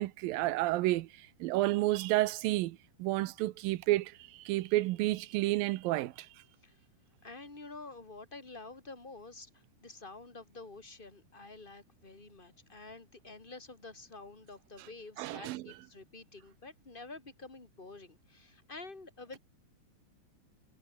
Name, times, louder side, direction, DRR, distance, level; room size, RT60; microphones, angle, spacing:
voice 1, 0.0-6.3 15.2-15.6, right 17 dB, 75° right, 2.4 m, -31 dB
voice 2, 7.2-19.4, left 3 dB, 15° left, 3.1 m, -49 dB
omnidirectional pair, 4.4 m